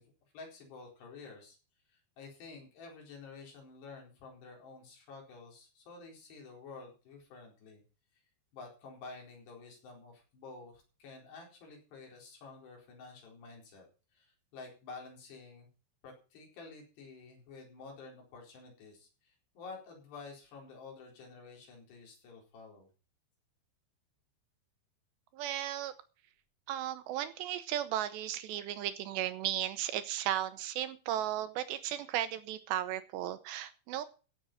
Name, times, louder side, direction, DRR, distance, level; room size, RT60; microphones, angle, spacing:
voice 1, 0.0-1.6 1.9-7.8 8.5-13.8 14.1-15.7 16.0-22.9, left 4 dB, 65° left, 0 dB, 6.4 m, -50 dB
voice 2, 25.3-25.9 26.7-34.1, right 12 dB, 80° right, 12 dB, 2.9 m, -35 dB
15.5 x 7.8 x 6.2 m, 0.36 s
omnidirectional pair, 5.3 m